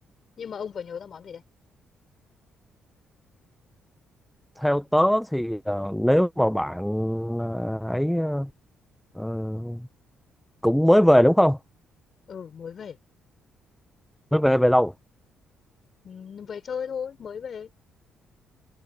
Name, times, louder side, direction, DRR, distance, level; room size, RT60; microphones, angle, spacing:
voice 1, 0.4-1.4 12.3-13.0 16.0-17.7, left 7 dB, 50° left, 6.2 m, -36 dB
voice 2, 4.6-8.5 9.1-9.9 10.6-11.6 14.3-14.9, equal, 5° left, 0.8 m, -21 dB
cardioid pair, 85°, 0 cm